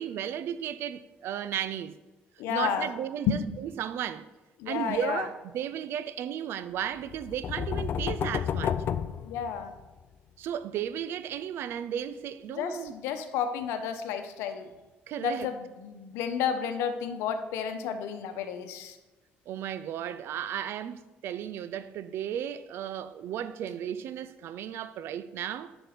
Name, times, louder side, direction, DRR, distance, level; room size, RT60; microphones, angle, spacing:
voice 1, 0.0-2.0 2.5-4.3 4.7-8.8 10.4-12.9 15.1-15.5 19.5-25.8, right 10 dB, 70° right, 0.5 m, -34 dB
voice 2, 2.4-2.9 3.3-3.4 4.6-5.2 9.2-9.7 12.5-14.7 15.2-19.0, left 8 dB, 85° left, 1.0 m, -31 dB
sound 1, 7.1-10.0, left 8 dB, 55° left, 0.5 m, -31 dB
9.1 x 6.1 x 5.1 m
supercardioid pair, 85°, 4 cm